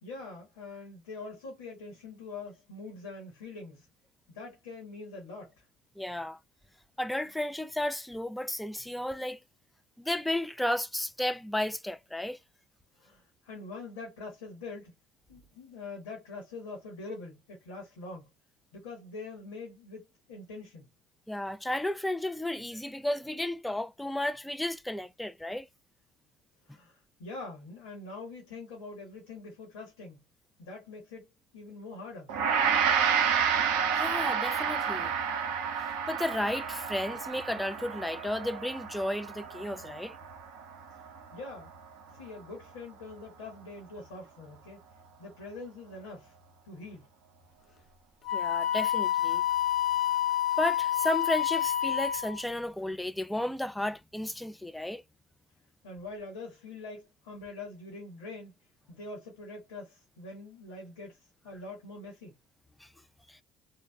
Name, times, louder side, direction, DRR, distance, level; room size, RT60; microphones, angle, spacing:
voice 1, 0.0-3.9 4.3-5.6 13.0-14.9 15.3-18.3 18.7-20.9 26.6-30.2 30.6-31.3 31.5-32.3 41.3-41.7 42.1-44.8 45.2-46.4 46.6-47.1 55.8-58.5 58.9-62.3, left 3 dB, 90° left, 1.3 m, -44 dB
voice 2, 6.0-6.4 7.0-9.4 10.0-12.4 21.3-25.7 33.9-35.1 35.8-40.2 48.3-49.4 50.6-55.0 62.8-62.9 63.3-63.4, left 1 dB, 5° left, 0.3 m, -33 dB
Gong, 32.3-41.7, right 7 dB, 80° right, 0.5 m, -30 dB
Wind instrument woodwind instrument, 48.2-52.4, left 11 dB, 45° left, 0.8 m, -28 dB
3.0 x 2.1 x 2.3 m
hypercardioid pair, 75°, 0 cm